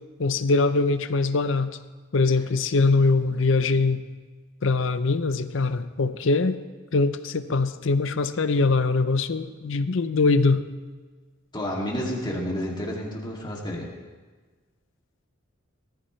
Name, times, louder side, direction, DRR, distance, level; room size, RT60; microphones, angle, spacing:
voice 1, 0.2-1.8 2.1-4.0 4.6-6.6 6.9-10.6, left 3 dB, 65° left, 11 dB, 0.6 m, -22 dB
voice 2, 11.5-13.9, equal, 20° left, -2 dB, 2.4 m, -30 dB
18.5 x 14.0 x 3.2 m, 1.4 s
head